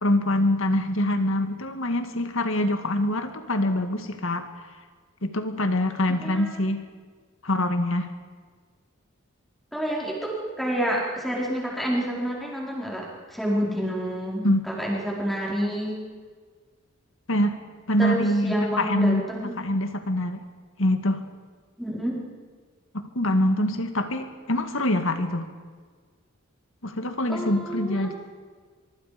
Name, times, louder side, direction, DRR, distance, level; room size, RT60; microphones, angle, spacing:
voice 1, 0.0-4.5 5.2-6.9 7.4-8.1 14.4-14.7 17.3-17.6 17.9-20.4 20.8-21.3 22.9-25.5 26.8-28.1, left 1 dB, 65° left, 8 dB, 1.9 m, -24 dB
voice 2, 6.2-6.5 9.7-16.0 18.0-19.5 21.8-22.2 27.3-28.1, equal, ahead, -3 dB, 4.8 m, -28 dB
24.0 x 24.0 x 5.2 m, 1.5 s
head